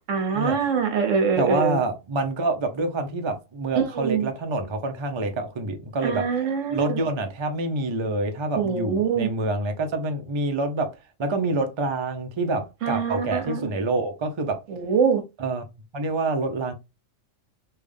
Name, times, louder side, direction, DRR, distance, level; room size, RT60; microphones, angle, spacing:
voice 1, 0.1-1.8 3.8-4.3 6.0-7.0 8.6-9.3 12.8-13.6 14.7-15.2, right 6 dB, 70° right, 1.2 m, -24 dB
voice 2, 1.4-6.3 6.7-14.6 15.4-15.6 15.9-16.7, right 2 dB, 45° right, 0.3 m, -27 dB
3.4 x 2.4 x 3.5 m
omnidirectional pair, 1.4 m